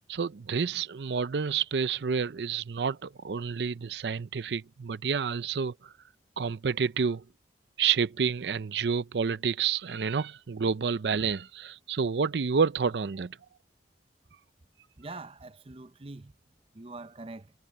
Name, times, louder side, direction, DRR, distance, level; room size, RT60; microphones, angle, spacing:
voice 1, 0.1-5.9 6.4-7.2 7.8-13.4, right 6 dB, 75° right, 0.5 m, -29 dB
voice 2, 15.0-16.3 16.7-17.5, right 2 dB, 35° right, 0.7 m, -43 dB
head